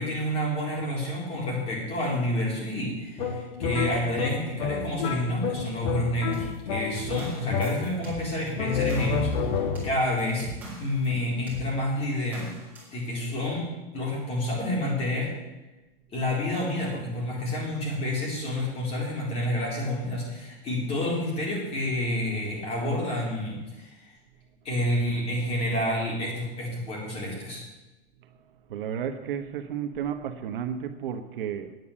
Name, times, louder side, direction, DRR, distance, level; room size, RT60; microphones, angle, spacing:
voice 1, 0.0-10.5 10.8-12.5 12.9-15.3 16.1-24.1 24.6-27.6, left 1 dB, 20° left, 4.0 m, -29 dB
sound 1, 3.2-8.1 8.6-10.1, left 6 dB, 55° left, 1.6 m, -30 dB
sound 2, 6.3-11.1 11.5-11.7 12.3-13.0, right 1 dB, 5° right, 4.0 m, -41 dB
voice 2, 28.7-31.8, right 8 dB, 60° right, 1.1 m, -32 dB
9.4 x 8.7 x 8.5 m
supercardioid pair, 165°, 30 cm